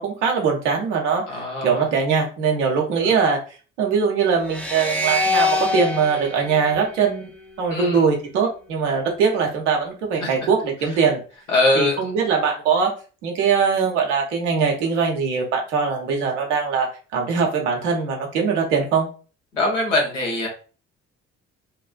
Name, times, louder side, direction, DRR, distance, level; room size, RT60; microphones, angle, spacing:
voice 1, 0.0-3.4 3.8-7.3 7.6-11.2 11.8-12.9 13.2-16.9 17.1-19.1, right 5 dB, 75° right, 1 dB, 0.8 m, -21 dB
voice 2, 1.3-1.9 3.0-3.1 7.7-8.0 10.2-10.3 11.5-12.1 19.5-20.5, left 2 dB, 85° left, -1 dB, 0.8 m, -22 dB
sound 1, 4.5-7.8, left 2 dB, 5° left, 0.6 m, -25 dB
2.9 x 2.4 x 2.3 m, 0.37 s
figure-of-eight pair, 45°, 36 cm